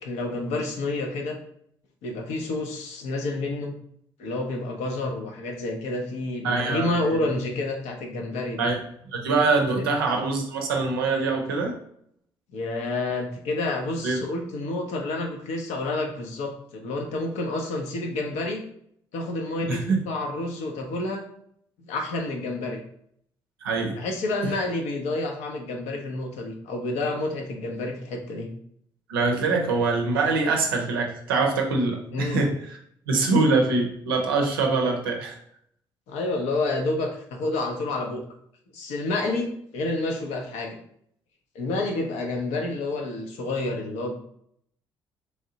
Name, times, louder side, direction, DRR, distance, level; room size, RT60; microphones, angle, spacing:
voice 1, 0.0-1.4 2.0-3.7 4.2-8.7 9.7-9.9 12.5-18.6 19.1-21.2 21.8-22.8 24.0-28.5 32.1-32.4 36.1-38.2 38.7-40.8 41.5-44.1, left 2 dB, 75° left, 2 dB, 0.6 m, -29 dB
voice 2, 6.4-6.9 7.2-7.3 8.6-8.8 9.1-11.7 14.0-14.2 19.6-20.0 23.6-24.0 24.4-24.5 29.1-32.8 33.1-35.4, right 3 dB, 90° right, 1 dB, 0.5 m, -24 dB
3.2 x 2.7 x 2.7 m, 0.69 s
hypercardioid pair, 45°, 12 cm